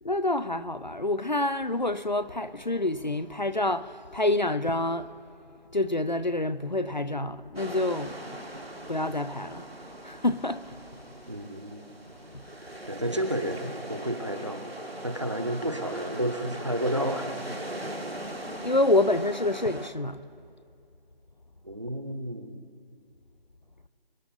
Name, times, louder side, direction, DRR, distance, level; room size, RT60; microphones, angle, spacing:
voice 1, 0.0-5.1 5.7-8.4 8.9-11.2 12.3-12.5 18.6-20.2, left 2 dB, 50° left, 0.5 m, -28 dB
sound 1, 7.6-19.9, right 1 dB, 85° right, 1.8 m, -40 dB
voice 2, 11.3-11.8 12.9-14.7 15.0-17.3 21.6-22.6, right 1 dB, 30° right, 0.8 m, -31 dB
25.0 x 9.6 x 4.0 m
figure-of-eight pair, 165°, 29 cm